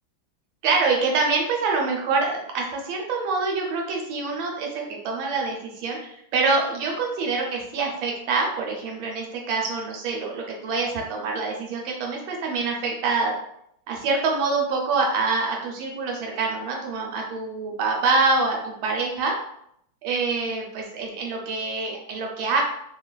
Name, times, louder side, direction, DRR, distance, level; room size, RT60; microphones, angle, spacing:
voice 1, 0.6-13.4 13.9-19.4 20.0-22.6, right 4 dB, 80° right, 0 dB, 1.4 m, -25 dB
3.1 x 2.3 x 2.2 m, 0.72 s
omnidirectional pair, 2.1 m